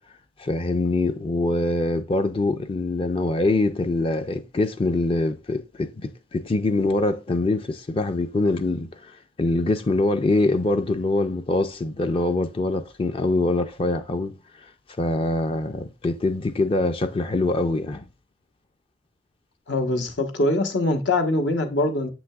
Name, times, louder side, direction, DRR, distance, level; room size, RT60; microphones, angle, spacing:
voice 1, 0.4-14.4 15.0-18.1, left 2 dB, 30° left, 0.4 m, -24 dB
voice 2, 19.7-22.1, left 2 dB, 80° left, 1.2 m, -23 dB
7.7 x 6.0 x 2.3 m
head